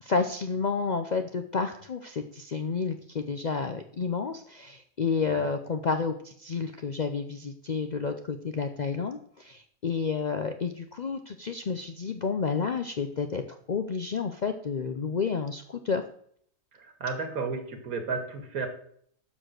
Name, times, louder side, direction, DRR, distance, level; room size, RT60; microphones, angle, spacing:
voice 1, 0.0-13.4 13.7-16.0, left 5 dB, 60° left, 7 dB, 0.4 m, -30 dB
voice 2, 16.7-18.7, right 4 dB, 85° right, 5 dB, 1.9 m, -33 dB
7.1 x 6.2 x 6.3 m, 0.63 s
omnidirectional pair, 1.5 m